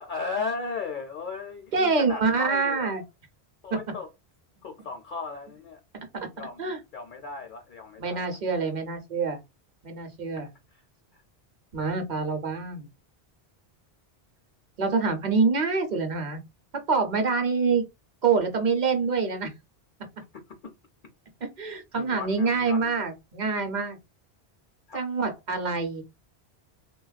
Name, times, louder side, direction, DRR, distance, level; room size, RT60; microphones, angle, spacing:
voice 1, 0.0-2.9 3.6-4.1 4.6-5.8 6.4-8.4 10.4-10.8 11.1-11.2 20.3-20.7 21.9-23.0 24.9-25.0, left 4 dB, 60° left, 0.6 m, -36 dB
voice 2, 1.7-3.0 6.6-6.8 8.0-9.4 9.8-10.5 11.7-12.9 14.8-16.4 16.7-17.8 18.2-19.5 21.4-24.0 24.9-26.0, right 4 dB, 50° right, 0.8 m, -26 dB
3.3 x 2.3 x 2.3 m
omnidirectional pair, 1.1 m